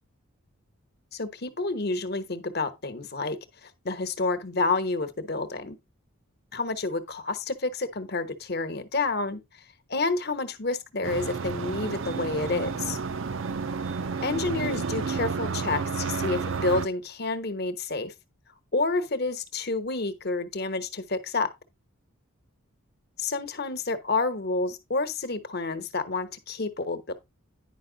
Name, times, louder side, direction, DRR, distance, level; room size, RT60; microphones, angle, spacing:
voice 1, 1.1-5.8 6.5-9.4 9.9-13.0 14.2-18.1 18.7-21.5 23.2-27.1, left 3 dB, 50° left, 1.1 m, -29 dB
sound 1, 11.0-16.9, right 5 dB, 65° right, 0.5 m, -31 dB
10.0 x 5.4 x 3.8 m
head